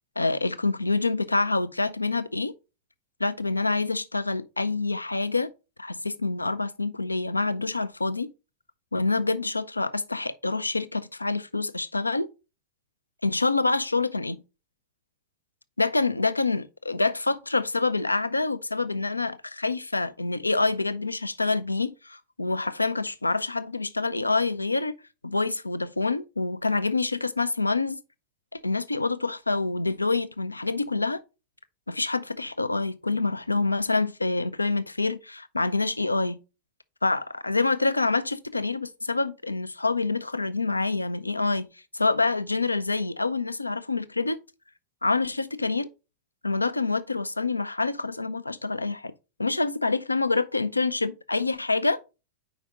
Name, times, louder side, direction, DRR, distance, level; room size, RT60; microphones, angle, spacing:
voice 1, 0.2-2.5 3.2-5.5 5.8-8.3 8.9-12.3 13.2-14.4 15.8-24.9 25.2-28.0 28.5-31.2 31.9-36.4 37.0-41.7 41.9-44.4 45.0-45.9 46.4-49.1 49.4-52.0, left 3 dB, 85° left, 0.4 m, -26 dB
5.1 x 4.9 x 4.1 m
figure-of-eight pair, 90°, 0 cm